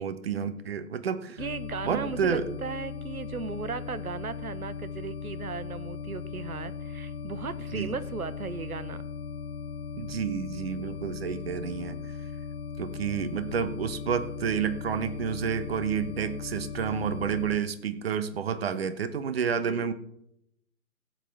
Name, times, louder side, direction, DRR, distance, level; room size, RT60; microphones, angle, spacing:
voice 1, 0.0-1.4 1.8-2.4 7.7-7.9 10.0-12.0 12.8-19.9, right 7 dB, 45° right, 12 dB, 1.0 m, -30 dB
sound 1, 1.4-17.6, left 5 dB, 40° left, 0.6 m, -38 dB
voice 2, 1.4-9.0 19.7-19.9, right 5 dB, 80° right, 16 dB, 1.0 m, -36 dB
16.0 x 7.9 x 3.5 m, 0.76 s
figure-of-eight pair, 135°, 43 cm